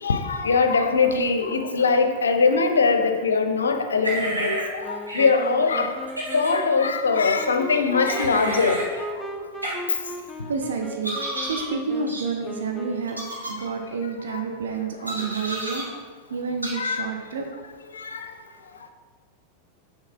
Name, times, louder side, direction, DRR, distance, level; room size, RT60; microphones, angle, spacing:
voice 1, 0.0-5.9 6.3-9.1 14.3-14.4 16.7-17.1 18.0-18.3, left 4 dB, 70° left, 7 dB, 0.5 m, -22 dB
Squirrel Impression, 4.0-4.7 5.1-5.2 6.1-6.5 8.1-8.9 9.6-9.7 11.0-11.7 12.1-12.2 13.1-13.5 15.1-15.8 16.6-16.7, right 1 dB, 85° right, 1.5 m, -30 dB
Wind instrument woodwind instrument, 4.8-13.2, equal, ahead, 0.4 m, -37 dB
voice 2, 10.5-15.8 16.3-17.5, right 5 dB, 65° right, 3 dB, 0.5 m, -29 dB
6.4 x 3.0 x 5.5 m, 1.5 s
figure-of-eight pair, 90°, 0 cm